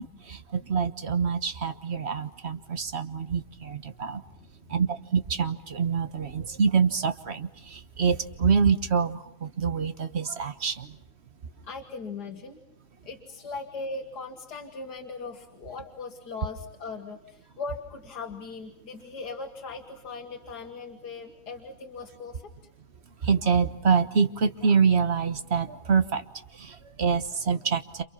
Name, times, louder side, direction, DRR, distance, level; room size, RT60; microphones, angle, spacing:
voice 1, 0.0-4.2 4.7-11.0 23.2-26.3 26.5-28.0, right 6 dB, 45° right, 9 dB, 1.4 m, -26 dB
voice 2, 11.6-12.6 13.0-22.5, left 4 dB, 80° left, 3 dB, 2.2 m, -39 dB
29.5 x 28.5 x 5.7 m, 0.76 s
omnidirectional pair, 1.7 m